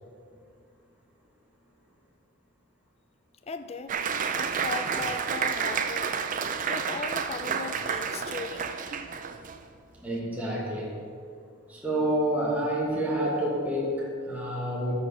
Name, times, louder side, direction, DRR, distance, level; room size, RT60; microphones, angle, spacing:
voice 1, 3.4-4.0 4.3-6.1 6.7-8.8, left 4 dB, 30° left, 9 dB, 0.4 m, -37 dB
Applause, 3.9-9.6, right 6 dB, 40° right, 0.4 m, -30 dB
voice 2, 10.0-10.9 11.7-14.9, right 1 dB, 10° right, -5 dB, 1.6 m, -28 dB
13.0 x 5.2 x 4.9 m, 2.4 s
head